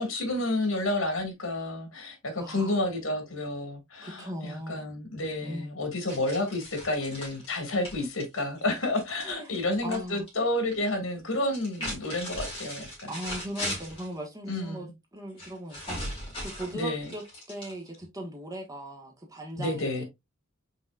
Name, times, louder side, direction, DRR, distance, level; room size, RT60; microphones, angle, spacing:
voice 1, 0.0-13.2 14.5-14.9 16.7-17.1 19.5-20.0, left 2 dB, 85° left, 1.9 m, -30 dB
voice 2, 2.4-2.8 4.0-4.9 5.4-5.7 9.2-10.3 13.1-16.0 16.4-20.0, right 1 dB, 15° right, 1.2 m, -39 dB
sound 1, 6.1-10.0 10.3-10.9 11.4-14.1 15.4-18.1, equal, 25° left, 3.0 m, -38 dB
5.6 x 4.1 x 2.3 m
head